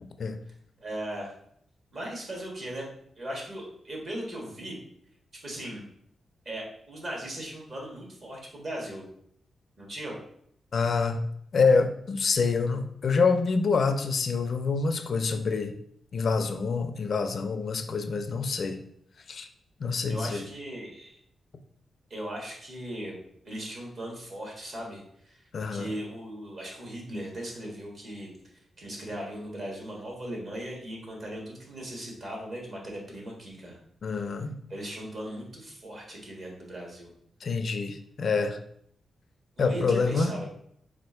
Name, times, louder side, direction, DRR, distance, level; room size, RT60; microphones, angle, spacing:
voice 1, 0.8-1.3 1.9-2.9 3.2-4.7 5.4-5.8 6.4-9.0 9.8-10.2 20.1-21.1 22.1-23.2 23.4-25.5 25.7-28.3 28.8-33.8 34.7-37.1 39.6-40.5, right 1 dB, 45° right, -1 dB, 1.5 m, -38 dB
voice 2, 10.7-11.2 11.5-15.7 16.1-18.8 19.3-19.5 19.8-20.4 25.5-25.9 34.0-34.6 37.4-38.6 39.6-40.3, left 4 dB, 50° left, 8 dB, 0.4 m, -26 dB
4.3 x 2.5 x 4.3 m, 0.69 s
wide cardioid pair, 120°, 0 cm